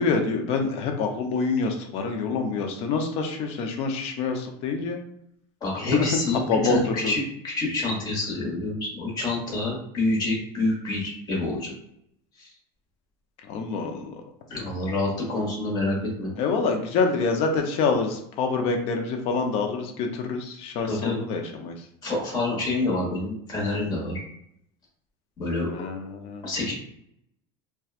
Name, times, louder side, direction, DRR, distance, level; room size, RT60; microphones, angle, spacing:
voice 1, 0.0-5.0 5.9-6.1 6.5-7.1 13.5-14.1 16.4-21.7 25.7-26.4, left 4 dB, 50° left, 4 dB, 0.6 m, -26 dB
voice 2, 5.6-11.7 12.4-12.5 14.5-16.3 20.8-21.2 22.0-24.2 25.4-25.7 26.4-26.7, left 2 dB, 30° left, -3 dB, 1.2 m, -27 dB
2.7 x 2.2 x 2.4 m, 0.72 s
supercardioid pair, 145°, 13 cm